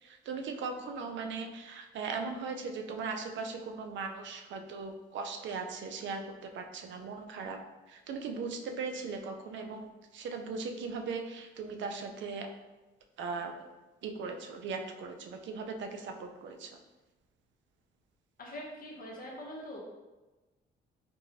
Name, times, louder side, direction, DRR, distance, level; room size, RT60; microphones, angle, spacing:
voice 1, 0.0-7.6 7.9-12.5 13.2-13.5 14.0-16.8, right 4 dB, 70° right, 4 dB, 0.5 m, -38 dB
voice 2, 18.4-19.8, equal, 45° left, -2 dB, 1.1 m, -43 dB
4.6 x 2.6 x 2.6 m, 1.1 s
cardioid pair, 90°, 20 cm